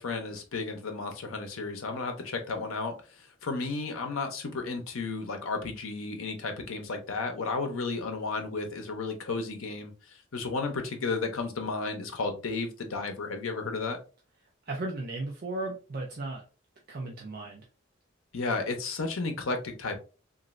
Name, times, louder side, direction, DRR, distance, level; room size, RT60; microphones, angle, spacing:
voice 1, 0.0-2.9 3.4-9.9 10.3-14.0 18.3-20.0, left 3 dB, 85° left, 5 dB, 0.7 m, -33 dB
voice 2, 14.7-16.4 16.9-17.7, right 2 dB, 45° right, 0 dB, 0.4 m, -35 dB
3.0 x 2.5 x 2.4 m, 0.33 s
head